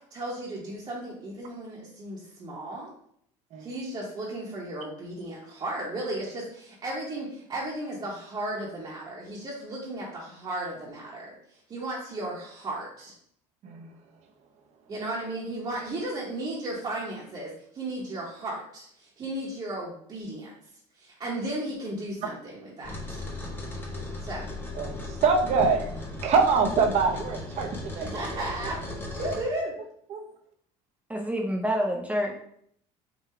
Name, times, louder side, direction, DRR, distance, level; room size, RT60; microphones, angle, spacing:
voice 1, 0.1-2.9 3.6-11.3 11.7-13.1 14.9-20.5 21.0-23.2 24.2-24.4 28.0-28.8 29.2-29.7, right 1 dB, 35° right, -6 dB, 1.0 m, -35 dB
voice 2, 13.6-14.0 24.7-25.9 26.2-28.1 30.1-30.3, right 4 dB, 50° right, 4 dB, 0.7 m, -24 dB
sound 1, 22.8-29.4, left 2 dB, 15° left, 0.8 m, -37 dB
voice 3, 31.1-32.4, equal, 10° right, 1 dB, 0.5 m, -27 dB
3.8 x 2.3 x 4.2 m, 0.68 s
cardioid pair, 115°, 14 cm